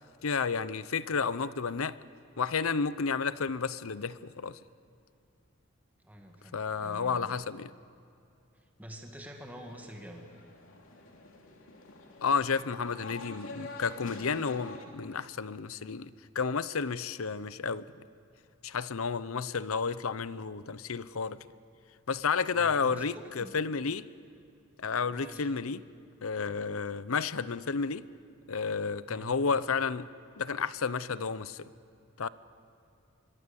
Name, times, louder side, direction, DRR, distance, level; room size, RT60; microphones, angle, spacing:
voice 1, 0.2-1.9 2.4-4.6 6.5-7.7 12.2-16.1 16.3-17.8 18.6-21.4 22.1-24.1 24.8-25.8 26.2-28.0 28.5-30.1 30.4-31.7 32.2-32.3, left 5 dB, 90° left, 0.7 m, -31 dB
voice 2, 6.0-7.3 8.5-10.4 22.5-23.5 25.1-25.5 29.1-29.3, equal, 10° right, 1.9 m, -47 dB
sound 1, 9.4-14.8, left 2 dB, 70° left, 3.1 m, -47 dB
25.0 x 22.5 x 7.1 m
head